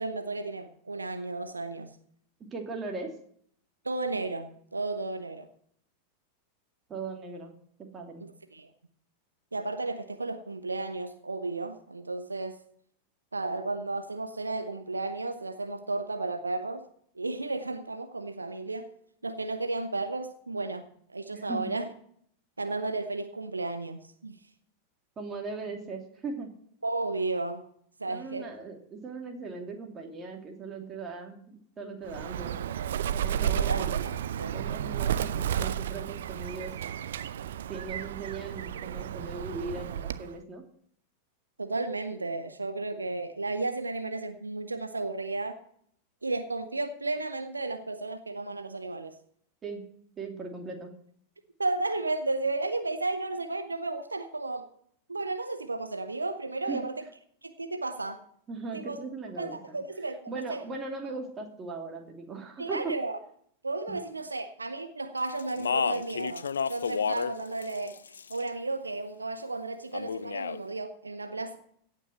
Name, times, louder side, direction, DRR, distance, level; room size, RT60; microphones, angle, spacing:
voice 1, 0.0-1.9 3.8-5.5 8.2-8.7 9.5-12.6 13.3-16.9 17.2-18.9 19.2-21.9 22.6-24.4 26.8-27.7 28.0-28.5 33.7-34.6 41.6-45.6 46.2-49.2 51.6-54.7 55.1-56.9 57.4-58.2 58.7-59.0 59.4-60.2 60.5-60.6 62.6-63.2 63.6-71.6, right 2 dB, 80° right, 0.9 m, -33 dB
voice 2, 2.5-3.1 6.9-7.5 7.9-8.2 21.3-21.7 25.2-26.5 28.1-32.6 33.1-34.2 34.5-36.7 37.7-40.6 49.6-49.8 50.2-50.9 56.7-56.8 58.5-59.8 60.3-62.9 63.9-64.0, right 3 dB, 25° right, 2.7 m, -39 dB
Bird, 32.1-40.4, right 9 dB, 60° right, 0.6 m, -32 dB
Speech, 65.4-67.3 67.6-68.5 69.9-70.6, left 6 dB, 70° left, 0.5 m, -31 dB
16.5 x 5.9 x 7.6 m
figure-of-eight pair, 90°, 0 cm